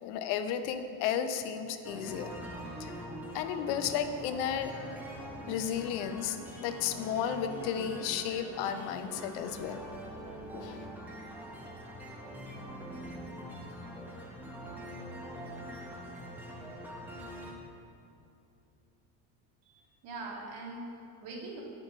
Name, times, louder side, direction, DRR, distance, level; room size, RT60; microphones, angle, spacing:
voice 1, 0.0-2.3 2.8-2.9 3.3-4.7 5.5-9.8 10.5-10.9, left 8 dB, 80° left, 8 dB, 0.7 m, -33 dB
sound 1, 1.8-17.5, equal, 5° right, 0.9 m, -44 dB
voice 2, 19.6-21.6, right 2 dB, 60° right, -2 dB, 1.8 m, -43 dB
8.5 x 5.8 x 3.9 m, 2.7 s
cardioid pair, 130°, 43 cm